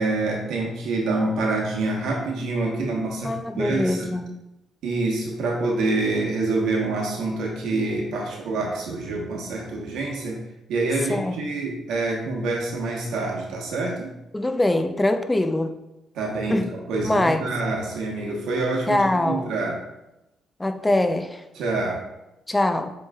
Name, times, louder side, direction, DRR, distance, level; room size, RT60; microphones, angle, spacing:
voice 1, 0.0-4.1 4.8-10.4 10.7-14.1 16.1-19.8 21.5-22.0, right 2 dB, 85° right, -1 dB, 1.1 m, -26 dB
voice 2, 3.2-4.3 11.1-11.4 14.3-15.7 16.5-16.7 17.0-17.5 18.9-19.5 20.6-21.4 22.5-22.9, left 1 dB, 15° left, 7 dB, 0.4 m, -23 dB
7.2 x 3.1 x 2.3 m, 0.93 s
cardioid pair, 90°, 0 cm